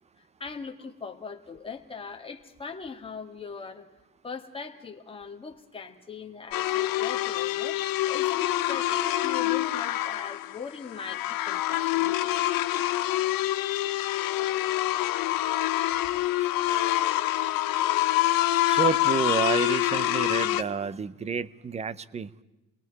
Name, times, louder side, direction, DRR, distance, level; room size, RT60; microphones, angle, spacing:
voice 1, 0.2-3.9 4.2-12.3, left 5 dB, 15° left, 3 dB, 1.9 m, -40 dB
sound 1, 6.5-20.6, left 15 dB, 70° left, 1.1 m, -26 dB
voice 2, 18.6-22.3, right 5 dB, 20° right, 18 dB, 0.6 m, -29 dB
29.5 x 22.5 x 4.7 m, 1.0 s
cardioid pair, 165°, 36 cm